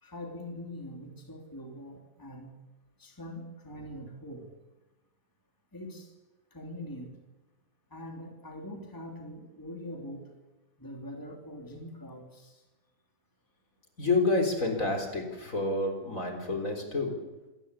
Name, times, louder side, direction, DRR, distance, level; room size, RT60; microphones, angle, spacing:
voice 1, 0.0-2.5 3.0-4.5 5.7-6.1 6.5-7.1 7.9-10.3 10.8-12.6, left 1 dB, 10° left, 2 dB, 3.0 m, -43 dB
voice 2, 14.0-17.1, left 3 dB, 45° left, 3 dB, 4.3 m, -28 dB
26.0 x 18.0 x 8.3 m, 1.1 s
omnidirectional pair, 1.9 m